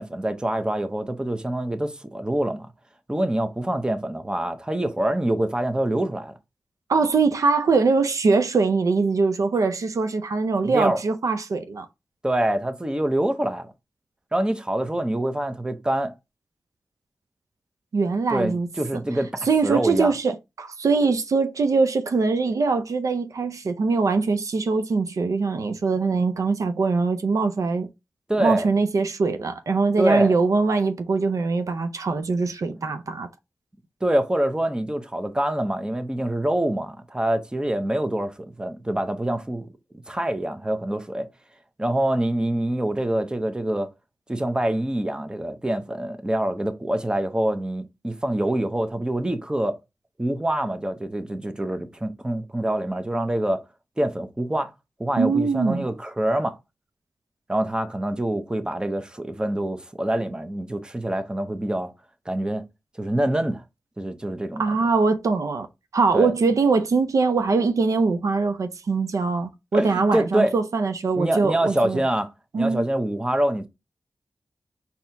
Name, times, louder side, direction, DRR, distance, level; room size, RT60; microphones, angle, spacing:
voice 1, 0.0-2.7 3.1-6.3 10.6-11.0 12.2-13.7 14.3-16.1 18.3-20.1 28.3-28.7 30.0-30.3 34.0-39.7 40.1-41.3 41.8-43.9 44.3-49.8 50.2-53.6 54.0-54.7 55.0-56.6 57.5-61.9 62.3-62.7 63.0-63.6 64.0-64.8 66.1-66.3 69.7-70.5 71.1-73.7, right 1 dB, 15° right, 0.8 m, -25 dB
voice 2, 6.9-11.9 17.9-18.7 19.5-27.9 28.4-33.3 55.2-55.9 64.6-65.7 65.9-72.0 72.5-72.8, right 4 dB, 75° right, 0.5 m, -22 dB
4.2 x 2.9 x 4.5 m
wide cardioid pair, 70°, 6 cm